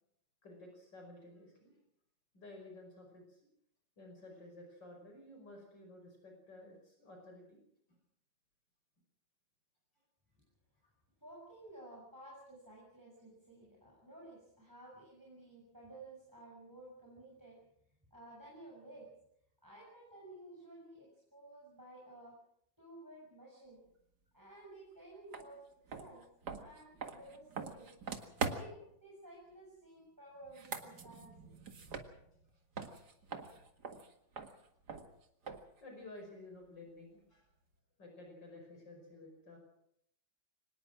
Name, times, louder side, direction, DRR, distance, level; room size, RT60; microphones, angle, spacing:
voice 1, 0.4-1.8 2.3-3.4 4.0-7.6 7.9-8.0 35.8-37.4 38.0-39.6, left 2 dB, 70° left, 3 dB, 6.0 m, -53 dB
voice 2, 11.2-17.6 18.1-19.1 19.6-22.4 22.8-23.8 24.3-26.3 26.5-28.0 28.5-31.5, right 1 dB, 10° right, -3 dB, 7.0 m, -54 dB
sound 1, 25.3-25.5 25.9-28.9 30.4-32.5 32.8-35.8, right 5 dB, 60° right, 2.4 m, -43 dB
25.0 x 19.5 x 6.2 m, 0.74 s
omnidirectional pair, 2.0 m